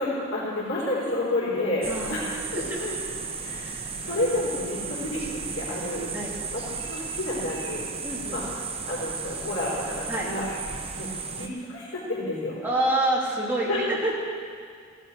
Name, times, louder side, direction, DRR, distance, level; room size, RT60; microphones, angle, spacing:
voice 1, 0.0-3.0 3.4-6.1 6.5-6.6 6.9-7.9 8.3-8.4 8.8-10.4 11.0-12.6 13.7-13.8, left 2 dB, 85° left, -8 dB, 4.4 m, -30 dB
voice 2, 1.8-2.2 2.5-2.8 6.1-6.3 8.0-8.4 10.1-10.3 12.6-14.2, right 1 dB, 10° right, -5 dB, 2.5 m, -27 dB
sound 1, 1.8-11.5, right 5 dB, 30° right, 0.9 m, -34 dB
16.5 x 11.5 x 4.6 m, 2.1 s
head